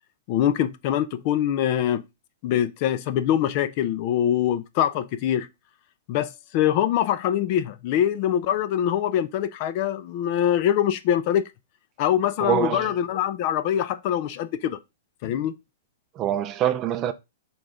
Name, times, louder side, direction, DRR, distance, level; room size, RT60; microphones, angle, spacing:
voice 1, 0.3-2.0 2.4-5.5 6.1-11.5 12.0-14.8 15.2-15.5, left 10 dB, 40° left, 0.5 m, -24 dB
voice 2, 12.4-12.9 16.2-17.1, right 10 dB, 25° right, 0.5 m, -24 dB
6.8 x 3.9 x 3.8 m
hypercardioid pair, 155°, 0 cm